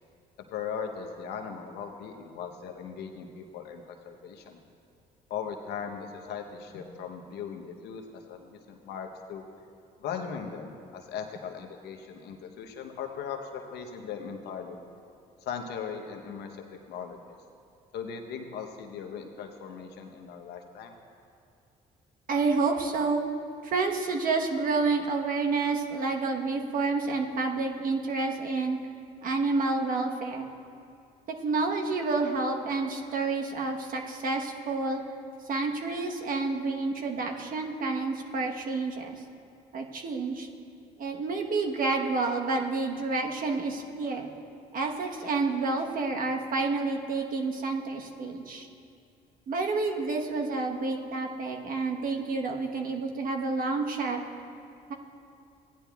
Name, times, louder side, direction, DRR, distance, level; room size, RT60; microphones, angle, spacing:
voice 1, 0.5-4.6 5.3-9.5 10.0-14.9 15.4-17.4 17.9-21.0, left 6 dB, 75° left, 4 dB, 0.9 m, -39 dB
voice 2, 22.3-23.3 23.6-28.9 29.2-30.5 31.4-35.0 35.5-39.1 39.7-40.5 41.0-44.3 44.7-48.7 49.5-54.2 54.9-55.0, right 3 dB, 55° right, 2 dB, 1.1 m, -29 dB
15.5 x 10.0 x 2.3 m, 2.4 s
supercardioid pair, 75°, 17 cm